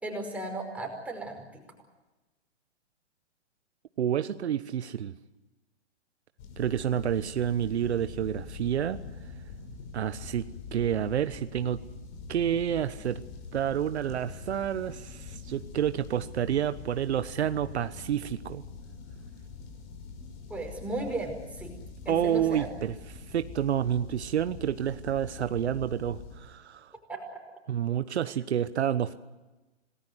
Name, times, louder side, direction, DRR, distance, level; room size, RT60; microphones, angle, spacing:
voice 1, 0.0-1.6 20.5-21.7 22.1-22.7 27.1-27.4, right 2 dB, 5° right, 1 dB, 5.2 m, -35 dB
voice 2, 4.0-5.1 6.6-9.0 9.9-11.8 12.3-13.2 13.5-18.6 22.1-26.9 27.7-29.1, right 9 dB, 70° right, 12 dB, 1.2 m, -29 dB
sound 1, 6.4-26.4, left 4 dB, 45° left, 6.0 m, -44 dB
27.0 x 19.5 x 8.0 m, 1.1 s
hypercardioid pair, 140°, 34 cm